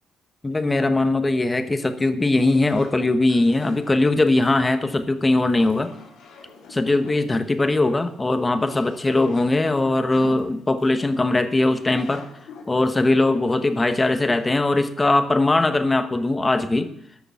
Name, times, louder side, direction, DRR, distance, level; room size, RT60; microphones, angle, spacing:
voice 1, 0.4-5.9 6.7-12.3 12.7-16.9, left 2 dB, 20° left, 9 dB, 1.1 m, -20 dB
sound 1, 2.4-14.5, left 4 dB, 80° left, 4.3 m, -44 dB
13.0 x 6.7 x 7.5 m, 0.73 s
cardioid pair, 100°, 0 cm